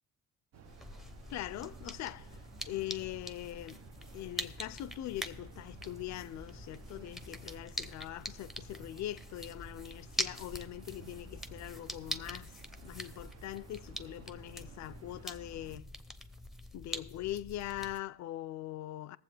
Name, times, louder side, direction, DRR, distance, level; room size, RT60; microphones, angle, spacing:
sound 1, 0.5-15.8, right 8 dB, 60° right, 0.7 m, -56 dB
sound 2, 0.6-18.0, left 1 dB, ahead, 0.6 m, -44 dB
voice 1, 1.3-2.3 2.7-3.8 4.1-15.9 16.7-19.2, left 14 dB, 65° left, 0.4 m, -42 dB
19.5 x 7.4 x 3.3 m
cardioid pair, 90°, 30 cm